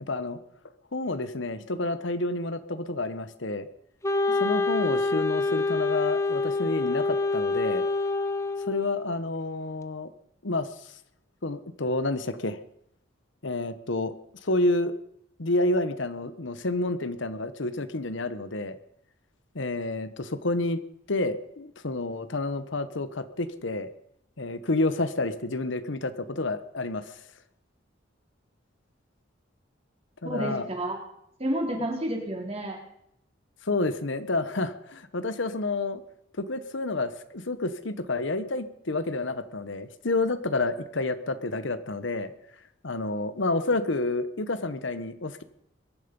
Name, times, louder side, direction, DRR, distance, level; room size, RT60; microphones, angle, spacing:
voice 1, 0.1-0.4 0.9-3.7 4.4-7.8 8.7-10.1 10.4-10.7 11.4-12.6 13.4-14.1 14.4-15.0 15.4-18.8 19.5-20.8 21.1-23.9 24.4-27.2 30.2-30.7 33.6-36.0 36.4-42.3 42.8-45.5, left 2 dB, 70° left, 12 dB, 1.1 m, -29 dB
Wind instrument woodwind instrument, 4.0-9.2, left 3 dB, 15° left, 0.8 m, -26 dB
voice 2, 30.2-31.0 31.4-32.8, right 1 dB, 30° right, 1 dB, 3.6 m, -30 dB
22.5 x 11.0 x 5.3 m, 0.74 s
head